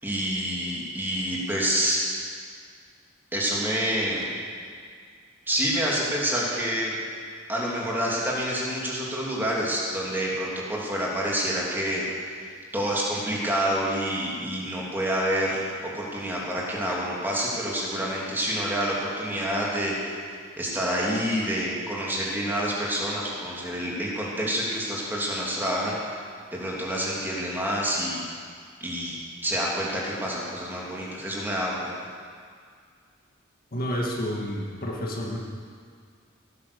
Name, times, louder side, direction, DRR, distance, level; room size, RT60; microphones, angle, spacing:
voice 1, 0.0-2.2 3.3-4.3 5.5-6.9 7.5-19.9 20.6-26.2 26.5-28.2 28.8-31.9, equal, 10° right, -5 dB, 2.9 m, -28 dB
voice 2, 33.7-35.4, equal, 45° left, -1 dB, 1.9 m, -30 dB
17.0 x 10.0 x 7.0 m, 2.1 s
head